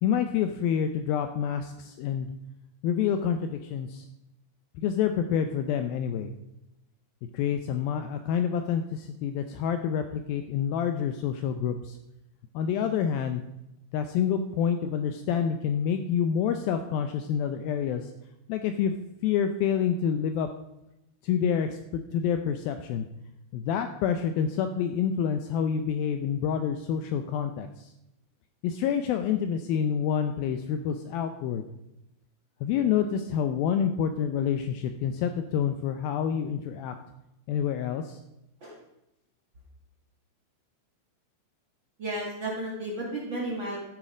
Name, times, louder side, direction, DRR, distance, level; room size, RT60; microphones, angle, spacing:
voice 1, 0.0-2.3 2.8-4.0 4.8-6.3 7.3-12.0 12.5-13.4 13.9-18.1 18.5-18.9 19.2-20.5 21.2-23.1 23.5-27.9 28.6-31.6 32.6-37.0 37.5-38.2, left 8 dB, 80° left, 8 dB, 2.2 m, -28 dB
voice 2, 42.0-43.8, right 1 dB, 40° right, -4 dB, 1.9 m, -33 dB
13.5 x 7.4 x 5.0 m, 0.87 s
omnidirectional pair, 4.7 m